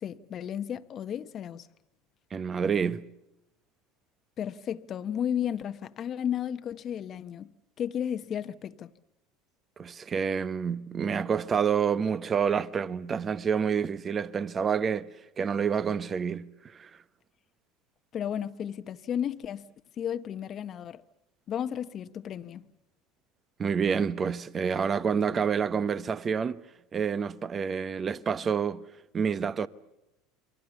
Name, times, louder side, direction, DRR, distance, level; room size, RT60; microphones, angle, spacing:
voice 1, 0.0-1.7 4.4-7.5 7.8-8.9 18.1-19.7 20.0-21.0 21.5-22.7, left 9 dB, 40° left, 1.0 m, -33 dB
voice 2, 2.3-3.0 9.8-15.1 15.4-16.9 23.6-26.6 26.9-28.8 29.1-29.7, right 6 dB, 30° right, 1.1 m, -28 dB
29.0 x 23.0 x 7.0 m
hypercardioid pair, 85°, 0 cm